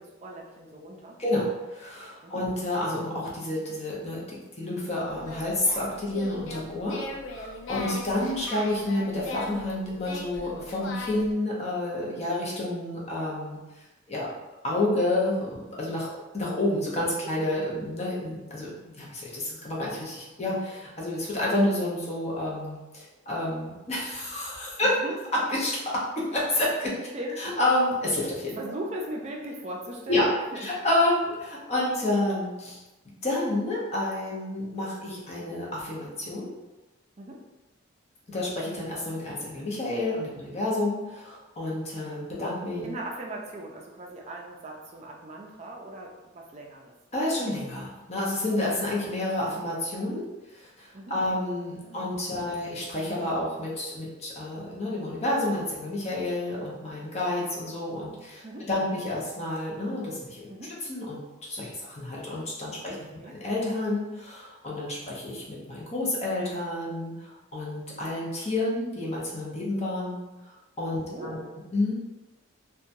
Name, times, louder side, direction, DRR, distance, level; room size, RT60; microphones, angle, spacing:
voice 1, 0.0-1.2 2.2-2.4 7.7-7.9 17.0-17.3 24.8-25.2 26.9-27.4 28.6-30.7 37.2-37.4 42.8-46.9 50.9-51.2 51.7-52.1 52.3-52.5 58.4-58.7 60.5-60.7 62.9-63.4 71.0-71.5, right 1 dB, 35° right, -1 dB, 0.4 m, -39 dB
voice 2, 1.2-7.0 7.3-13.6 14.1-14.3 14.6-24.9 25.3-26.9 27.4-28.6 30.1-30.3 30.5-32.8 33.2-36.5 38.3-42.9 47.1-50.3 50.5-60.5 60.9-70.2 70.8-71.4 71.7-71.9, left 1 dB, 35° left, -5 dB, 0.6 m, -29 dB
Singing, 5.1-11.3, left 3 dB, 75° left, 0.4 m, -39 dB
2.8 x 2.2 x 2.6 m, 1.1 s
head